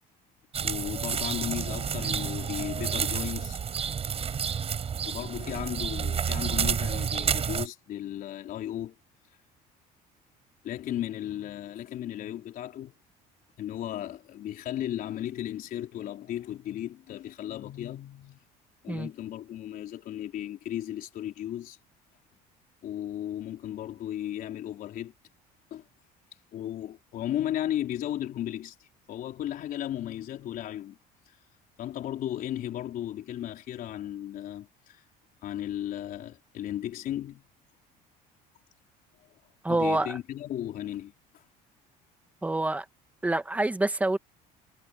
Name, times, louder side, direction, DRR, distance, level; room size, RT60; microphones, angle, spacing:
sound 1, 0.5-7.7, right 7 dB, 35° right, 6.8 m, -30 dB
voice 1, 0.6-3.6 5.0-8.9 10.6-12.9 13.6-18.4 18.8-21.8 22.8-25.1 25.7-25.9 26.5-31.0 31.3-31.4 31.8-35.0 35.4-37.4 39.7-41.4, left 12 dB, 55° left, 4.3 m, -35 dB
voice 2, 39.6-40.2 42.4-42.8 43.2-44.2, right 2 dB, 10° right, 1.7 m, -26 dB
cardioid pair, 115°, 17 cm